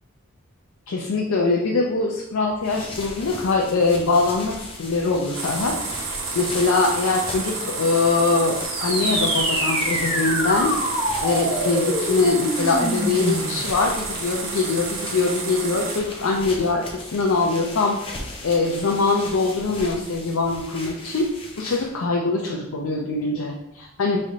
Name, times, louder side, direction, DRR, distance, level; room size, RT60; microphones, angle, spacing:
voice 1, 0.9-5.8 6.4-10.7 11.2-18.0 18.4-21.3 21.6-24.2, left 3 dB, 85° left, -1 dB, 0.5 m, -22 dB
sound 1, 2.5-22.1, left 2 dB, 25° left, 0.6 m, -38 dB
sound 2, 5.3-16.0, right 4 dB, 75° right, 0.8 m, -31 dB
sound 3, 8.6-13.6, equal, 25° right, 0.9 m, -25 dB
4.9 x 3.2 x 2.7 m, 0.89 s
head